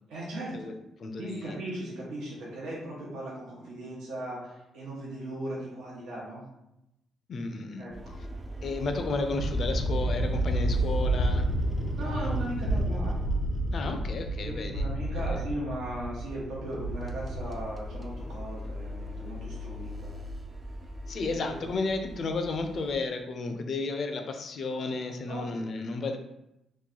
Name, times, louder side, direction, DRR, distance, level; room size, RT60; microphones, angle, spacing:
voice 1, 0.1-0.7 1.2-6.4 7.8-8.2 12.0-13.2 14.4-20.1 21.2-21.6 25.3-25.6, right 1 dB, 85° right, -5 dB, 0.9 m, -38 dB
voice 2, 1.0-1.6 7.3-7.9 8.6-11.5 13.7-14.8 15.3-15.4 21.1-26.2, left 3 dB, 55° left, 6 dB, 0.4 m, -32 dB
sound 1, 7.9-14.6 15.0-15.3 15.6-15.8 16.2-23.0, equal, 30° right, 0.4 m, -41 dB
sound 2, 9.3-17.6, right 1 dB, 85° left, 0.7 m, -30 dB
3.0 x 2.3 x 3.7 m, 0.88 s
cardioid pair, 90°, 0 cm